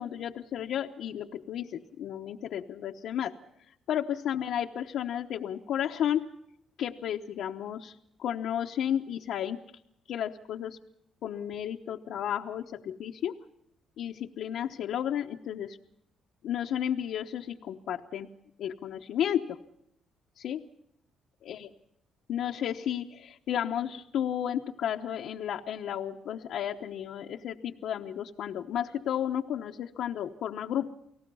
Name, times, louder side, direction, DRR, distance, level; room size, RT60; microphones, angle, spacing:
voice 1, 0.0-3.3 3.9-6.2 6.8-9.6 10.1-10.8 11.2-13.3 14.0-15.8 16.4-18.3 18.6-19.6 20.4-20.6 21.5-21.7 22.3-30.9, left 10 dB, 75° left, 1 dB, 1.0 m, -33 dB
30.0 x 18.5 x 5.5 m, 0.78 s
cardioid pair, 90°, 0 cm